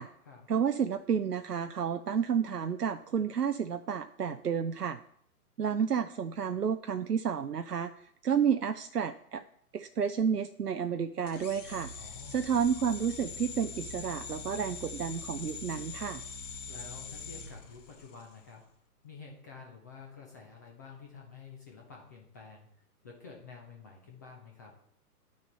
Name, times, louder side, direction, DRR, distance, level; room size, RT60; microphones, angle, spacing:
voice 1, 0.5-5.0 5.6-9.4 9.7-11.9 12.3-16.2, right 7 dB, 85° right, 9 dB, 0.6 m, -31 dB
sound 1, 11.3-18.4, left 4 dB, 50° left, 1.6 m, -43 dB
voice 2, 12.0-12.5 16.7-18.6 19.0-22.7 23.0-24.7, left 5 dB, 10° left, -1 dB, 0.6 m, -50 dB
10.5 x 6.4 x 4.1 m, 0.66 s
figure-of-eight pair, 130°, 46 cm